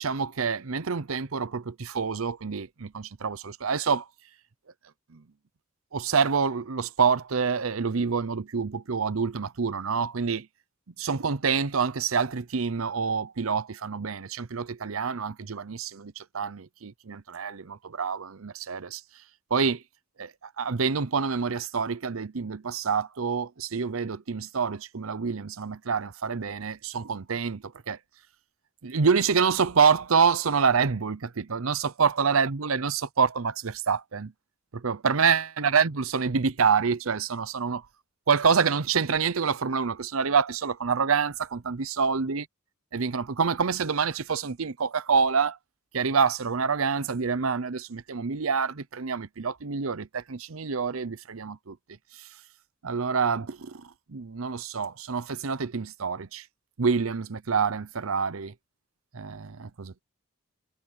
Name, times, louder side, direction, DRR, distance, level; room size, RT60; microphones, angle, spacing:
voice 1, 0.0-4.0 5.1-5.2 5.9-10.5 11.0-19.0 19.5-19.8 20.2-20.3 20.6-28.0 28.8-34.3 34.7-37.8 38.3-42.4 42.9-45.6 45.9-51.8 52.2-52.3 52.8-56.4 56.8-58.5 59.1-60.0, right 5 dB, 85° right, 0.8 m, -27 dB
head